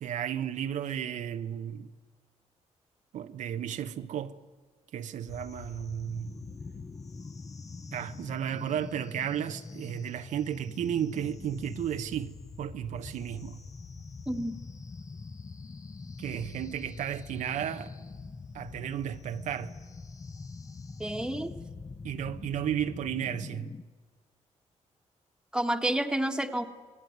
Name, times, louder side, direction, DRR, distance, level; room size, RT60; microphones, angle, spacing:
voice 1, 0.0-1.9 3.1-4.3 4.9-6.3 7.9-12.3 12.6-13.6 16.2-17.9 18.5-19.7 22.0-23.7, right 9 dB, 90° right, 1.3 m, -33 dB
sound 1, 5.3-23.8, left 4 dB, 25° left, 1.0 m, -44 dB
voice 2, 14.3-14.6 21.0-21.5 25.5-26.6, right 1 dB, 5° right, 1.7 m, -29 dB
28.5 x 20.0 x 9.6 m
wide cardioid pair, 135°, 12 cm